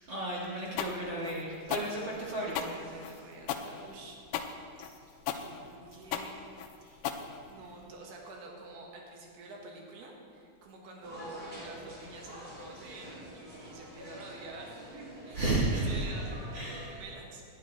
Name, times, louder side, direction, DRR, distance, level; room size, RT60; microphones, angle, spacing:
voice 1, 0.1-2.7 15.3-15.9 16.5-16.8, right 2 dB, 55° right, -5 dB, 1.3 m, -33 dB
sound 1, 0.8-7.8, left 9 dB, 90° left, 2.6 m, -36 dB
voice 2, 2.0-4.2 5.3-6.3 7.5-17.4, right 3 dB, 90° right, 0 dB, 3.5 m, -48 dB
sound 2, 11.0-16.9, equal, 15° right, 1.9 m, -47 dB
18.5 x 10.5 x 3.3 m, 2.5 s
omnidirectional pair, 4.4 m